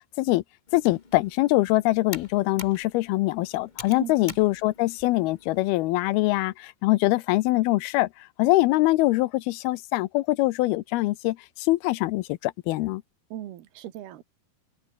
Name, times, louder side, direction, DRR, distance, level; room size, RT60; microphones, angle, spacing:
voice 1, 0.7-13.0, left 19 dB, 85° left, 2.6 m, -23 dB
Computer keyboard, 0.7-5.8, left 3 dB, 60° left, 0.4 m, -45 dB
voice 2, 4.0-4.4 13.3-14.2, right 12 dB, 90° right, 3.5 m, -38 dB
omnidirectional pair, 4.4 m